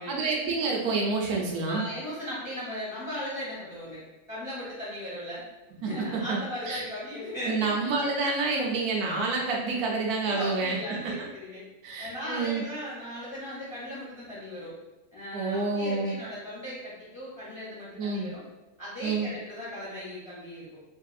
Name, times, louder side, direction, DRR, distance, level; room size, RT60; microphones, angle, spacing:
voice 1, 0.1-1.8 5.8-6.8 7.5-11.3 11.8-12.6 15.3-16.2 18.0-18.3 19.0-19.3, right 3 dB, 80° right, -2 dB, 1.1 m, -28 dB
voice 2, 1.7-5.4 5.8-8.0 10.2-11.6 12.0-14.7 15.1-18.4 18.8-20.7, equal, 20° left, -9 dB, 1.0 m, -37 dB
3.2 x 2.6 x 2.3 m, 1.1 s
omnidirectional pair, 1.6 m